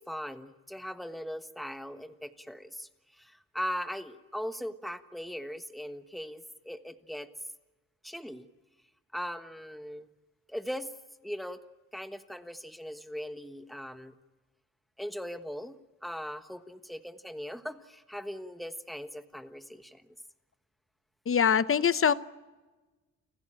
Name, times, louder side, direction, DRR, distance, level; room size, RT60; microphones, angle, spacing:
voice 1, 0.1-7.3 8.0-8.5 9.1-10.1 10.5-10.9 11.2-11.6 11.9-14.1 15.0-20.1, equal, ahead, 9 dB, 1.3 m, -39 dB
voice 2, 21.3-22.1, left 7 dB, 40° left, 15 dB, 0.8 m, -23 dB
29.0 x 16.0 x 8.9 m, 1.2 s
cardioid pair, 115°, 33 cm